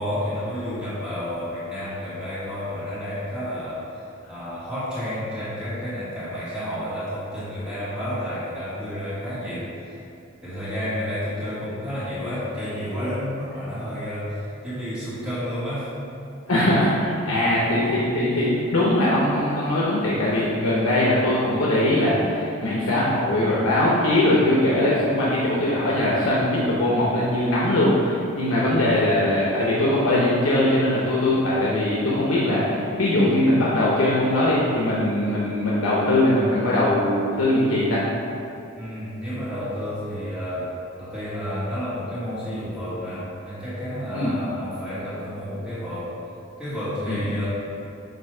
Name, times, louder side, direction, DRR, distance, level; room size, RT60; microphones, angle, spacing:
voice 1, 0.0-4.0 4.3-9.9 10.4-15.9 17.3-17.5 38.7-40.7 41.0-46.1 46.6-47.5, equal, 5° right, -13 dB, 1.4 m, -30 dB
voice 2, 16.5-38.1 44.1-44.3 47.1-47.2, left 1 dB, 85° left, -6 dB, 0.9 m, -21 dB
7.7 x 2.7 x 4.8 m, 2.7 s
head